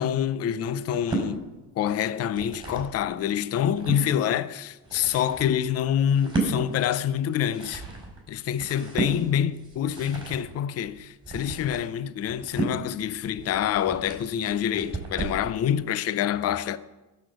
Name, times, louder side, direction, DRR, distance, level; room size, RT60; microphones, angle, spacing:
voice 1, 0.0-1.5 1.8-7.8 8.3-16.8, left 9 dB, 30° left, 0.5 m, -26 dB
sound 1, 0.8-1.3 2.1-2.9 3.4-4.0 4.6-15.5, right 3 dB, 10° right, 4.4 m, -34 dB
14.0 x 6.5 x 7.9 m
cardioid pair, 125°, 50 cm